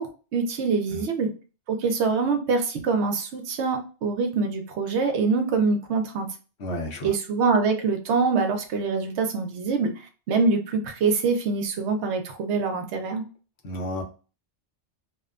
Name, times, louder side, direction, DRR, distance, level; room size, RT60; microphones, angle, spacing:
voice 1, 0.0-1.3 1.7-6.3 7.0-13.2, right 4 dB, 70° right, 5 dB, 0.9 m, -25 dB
voice 2, 6.6-7.1 13.6-14.0, left 1 dB, 65° left, 1 dB, 1.0 m, -31 dB
2.7 x 2.2 x 2.3 m, 0.35 s
omnidirectional pair, 1.2 m